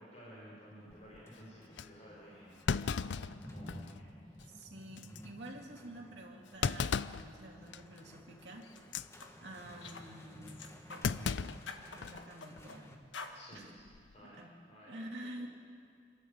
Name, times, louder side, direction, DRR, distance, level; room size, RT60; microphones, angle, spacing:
voice 1, 0.0-2.5 2.9-3.1 3.5-4.3 13.3-13.8 14.1-14.4 14.7-15.0 15.4-15.5, equal, 35° left, -6 dB, 4.6 m, -54 dB
sound 1, 0.7-13.0, left 1 dB, 15° left, 1.3 m, -54 dB
Thump thud, 0.9-1.2 1.8-1.9 2.7-4.0 4.4-4.5 5.0-5.2 6.6-7.3 7.7-8.0 8.8-9.1 11.0-12.2 12.6-12.7 13.8-14.1, left 5 dB, 70° left, 0.5 m, -35 dB
voice 2, 4.5-8.7 9.4-13.0 13.5-13.6 14.2-14.5 14.9-15.5, right 1 dB, 65° right, 0 dB, 2.9 m, -49 dB
sound 2, 8.6-8.8 9.2-9.3 9.8-10.1 10.5-11.4 11.7-12.8 13.1-13.4, left 4 dB, 90° left, 1.5 m, -47 dB
27.0 x 13.0 x 8.3 m, 2.2 s
head